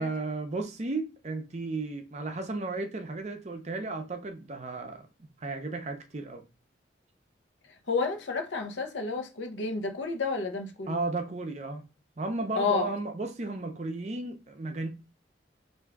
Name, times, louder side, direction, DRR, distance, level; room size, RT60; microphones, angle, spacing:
voice 1, 0.0-5.1 5.4-6.4 10.9-11.8 12.2-14.9, right 3 dB, 40° right, 0.5 m, -34 dB
voice 2, 7.9-11.0 12.5-12.9, left 4 dB, 90° left, 0.8 m, -30 dB
3.5 x 2.6 x 3.4 m
head